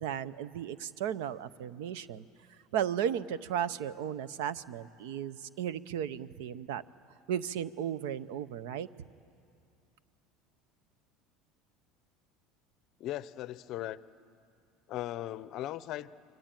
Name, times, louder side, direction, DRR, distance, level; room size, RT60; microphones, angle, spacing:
voice 1, 0.0-2.2 2.7-6.8 7.3-8.9, right 9 dB, 85° right, 17 dB, 0.7 m, -35 dB
voice 2, 13.0-14.0 14.9-16.1, left 14 dB, 45° left, 16 dB, 0.6 m, -38 dB
25.5 x 24.5 x 9.1 m, 2.5 s
cardioid pair, 165°, 0 cm